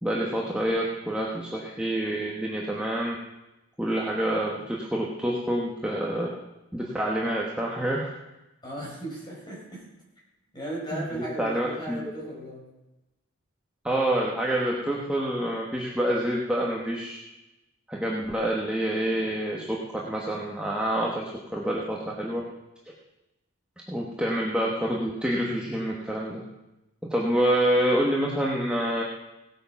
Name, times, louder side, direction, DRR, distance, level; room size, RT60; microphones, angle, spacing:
voice 1, 0.0-3.1 3.8-6.3 6.7-8.1 10.9-11.0 11.4-12.2 13.8-17.2 17.9-22.4 23.9-26.4 27.1-29.0, right 1 dB, 5° right, -3 dB, 1.3 m, -27 dB
voice 2, 8.6-9.8 10.5-12.7, right 1 dB, 20° left, -4 dB, 5.3 m, -36 dB
17.5 x 8.6 x 5.9 m, 0.99 s
head